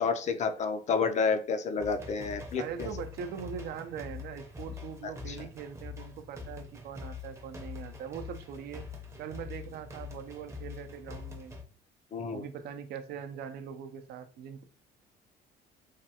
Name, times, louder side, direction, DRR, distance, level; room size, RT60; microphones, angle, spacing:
voice 1, 0.0-2.9 5.3-5.4 12.1-12.4, left 5 dB, 45° left, 7 dB, 0.5 m, -30 dB
sound 1, 1.8-11.6, left 5 dB, 15° right, 0.6 m, -44 dB
voice 2, 2.5-8.8 9.2-11.6 12.3-14.6, right 7 dB, 70° right, 8 dB, 0.5 m, -41 dB
3.2 x 2.2 x 2.8 m, 0.38 s
cardioid pair, 110°, 17 cm